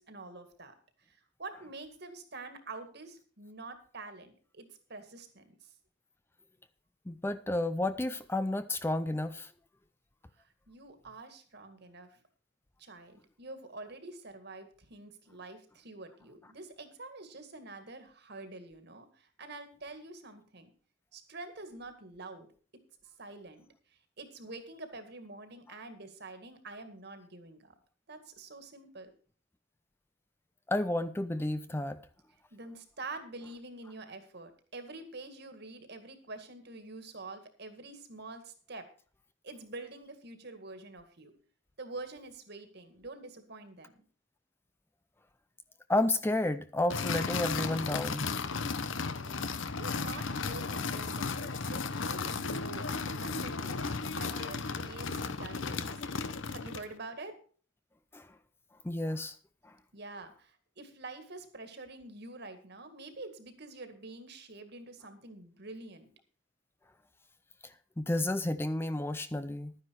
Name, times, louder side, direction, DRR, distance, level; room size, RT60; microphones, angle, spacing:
voice 1, 0.0-5.7 10.4-12.2 12.8-20.7 21.1-22.5 23.0-27.8 28.1-29.1 32.5-38.9 39.4-41.3 41.8-44.0 49.1-53.8 54.1-56.0 56.5-57.4 59.9-66.1, right 3 dB, 55° right, 8 dB, 2.1 m, -47 dB
voice 2, 7.1-9.5 30.7-32.0 45.9-48.3 58.1-58.3 58.8-59.3 59.6-59.7 67.6-69.8, left 1 dB, 10° left, 12 dB, 0.5 m, -31 dB
sound 1, 46.9-56.9, left 4 dB, 70° left, 0.9 m, -35 dB
12.0 x 9.8 x 4.7 m, 0.41 s
head